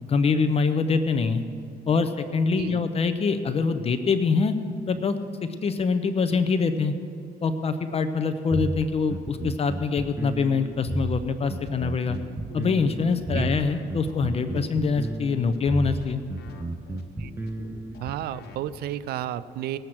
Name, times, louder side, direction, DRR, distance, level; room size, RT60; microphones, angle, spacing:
voice 1, 0.1-1.4 1.9-4.5 4.9-5.2 5.6-6.9 7.4-12.2 12.5-16.2, left 5 dB, 35° left, 10 dB, 0.7 m, -24 dB
voice 2, 2.5-2.8 13.3-13.5 17.2-17.3 18.0-19.8, right 12 dB, 70° right, 15 dB, 0.5 m, -32 dB
sound 1, 8.5-18.1, right 2 dB, 15° right, 0.5 m, -32 dB
sound 2, 11.4-19.0, left 4 dB, 70° left, 1.3 m, -45 dB
19.5 x 7.8 x 6.0 m, 2.2 s
cardioid pair, 110°, 17 cm